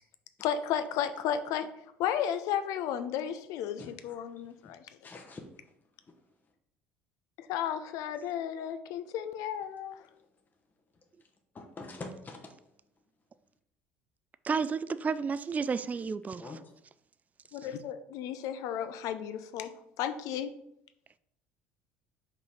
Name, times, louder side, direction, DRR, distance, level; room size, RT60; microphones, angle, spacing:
voice 1, 0.4-1.7 2.0-4.8 7.4-10.1 17.5-20.5, left 9 dB, 60° left, 0.6 m, -33 dB
voice 2, 3.8-4.4 5.0-5.7 11.5-12.5 16.4-16.7 18.4-18.5, left 3 dB, 30° left, 1.0 m, -45 dB
voice 3, 14.4-16.4, right 5 dB, 25° right, 0.3 m, -31 dB
5.3 x 4.1 x 4.8 m
hypercardioid pair, 65°, 7 cm